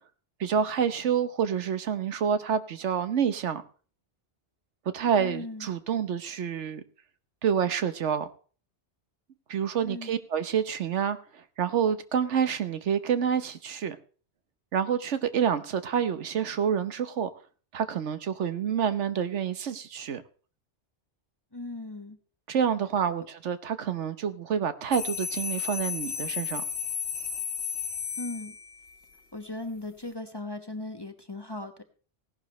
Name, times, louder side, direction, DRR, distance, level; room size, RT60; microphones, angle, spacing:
voice 1, 0.4-3.6 4.9-6.8 7.4-8.3 9.5-14.0 14.7-17.3 17.7-20.2 22.5-26.6, right 8 dB, 90° right, 1.3 m, -28 dB
voice 2, 5.2-5.7 9.8-10.2 21.5-22.2 28.2-28.6 29.3-31.8, left 2 dB, 25° left, 1.0 m, -38 dB
sound 1, 24.9-28.9, left 7 dB, 55° left, 1.5 m, -33 dB
17.0 x 11.5 x 3.1 m
omnidirectional pair, 1.2 m